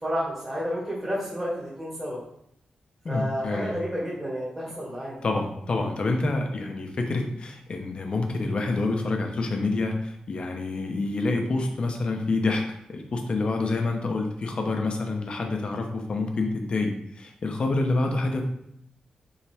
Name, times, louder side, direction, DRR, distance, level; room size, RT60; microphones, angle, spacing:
voice 1, 0.0-2.2 3.1-5.2, equal, 20° right, -9 dB, 2.2 m, -31 dB
voice 2, 3.0-3.7 5.2-12.6 12.9-18.4, left 3 dB, 45° left, 3 dB, 0.9 m, -27 dB
7.3 x 3.7 x 3.5 m, 0.75 s
wide cardioid pair, 155°, 2 cm